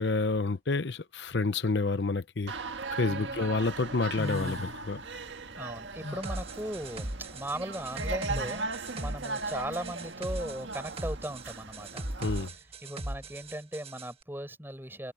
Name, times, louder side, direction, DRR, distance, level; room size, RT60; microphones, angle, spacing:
voice 1, 0.0-2.5 2.9-5.0 12.2-12.5, left 3 dB, 60° left, 0.7 m, -29 dB
sound 1, 2.5-12.5, right 3 dB, 70° right, 1.6 m, -38 dB
sound 2, 2.6-3.4 3.8-5.3 5.6-8.6, left 2 dB, 35° left, 1.3 m, -40 dB
voice 2, 3.1-3.6 5.6-12.0 12.8-15.1, right 1 dB, 10° right, 6.5 m, -38 dB
sound 3, 6.2-14.1, right 1 dB, 30° right, 1.5 m, -39 dB
head